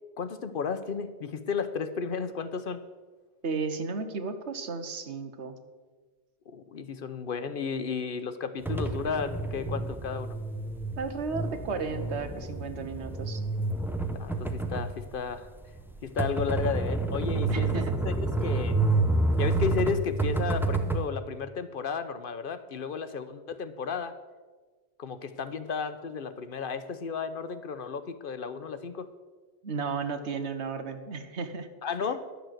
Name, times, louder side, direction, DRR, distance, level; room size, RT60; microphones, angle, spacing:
voice 1, 0.2-2.8 6.5-10.4 14.1-15.5 16.0-18.8 19.4-24.1 25.0-29.1 31.8-32.3, left 6 dB, 55° left, 11 dB, 0.9 m, -33 dB
voice 2, 3.4-5.6 11.0-13.4 17.5-18.0 29.6-31.7, right 4 dB, 85° right, 8 dB, 1.4 m, -34 dB
sound 1, 8.6-21.0, right 3 dB, ahead, 0.6 m, -29 dB
11.5 x 6.8 x 7.8 m, 1.4 s
omnidirectional pair, 1.1 m